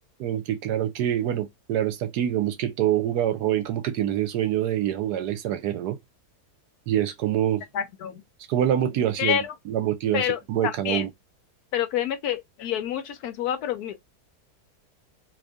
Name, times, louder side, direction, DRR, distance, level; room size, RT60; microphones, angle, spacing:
voice 1, 0.2-6.0 6.9-7.6 8.5-9.4 9.7-11.1, right 11 dB, 80° right, 1.2 m, -25 dB
voice 2, 7.7-8.2 9.2-9.5 10.1-11.1 11.7-14.0, left 10 dB, 75° left, 1.1 m, -28 dB
3.0 x 2.5 x 3.5 m
omnidirectional pair, 1.7 m